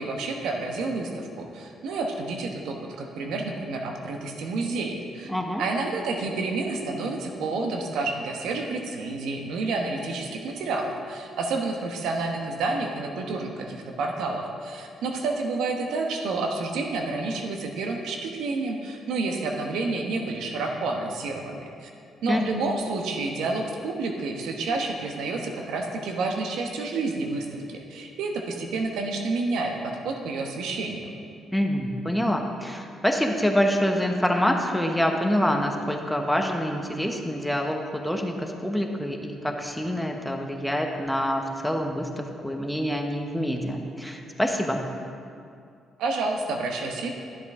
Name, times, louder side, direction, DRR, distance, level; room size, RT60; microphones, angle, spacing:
voice 1, 0.0-5.3 5.6-21.9 22.2-31.1 46.0-47.1, right 3 dB, 80° right, 2 dB, 1.0 m, -29 dB
voice 2, 5.3-5.6 22.3-22.4 31.5-44.8, equal, 5° left, 3 dB, 0.9 m, -26 dB
12.0 x 7.6 x 3.7 m, 2.4 s
cardioid pair, 90°, 0 cm